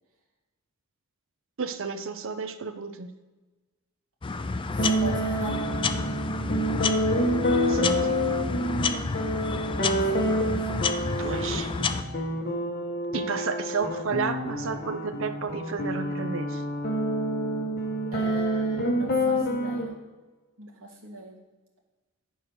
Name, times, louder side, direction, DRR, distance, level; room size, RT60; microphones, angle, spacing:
voice 1, 1.6-3.1 7.7-8.1 11.2-11.7 13.1-16.6, right 5 dB, 65° right, 9 dB, 0.6 m, -31 dB
sound 1, 4.2-12.0, left 4 dB, 25° left, 0.4 m, -30 dB
voice 2, 4.7-5.8 9.3-9.6 10.1-10.6 18.1-19.9 20.6-21.4, equal, 80° right, -3 dB, 2.1 m, -40 dB
sound 2, 4.8-19.9, equal, 45° left, 1.4 m, -28 dB
9.9 x 4.8 x 6.2 m, 1.2 s
head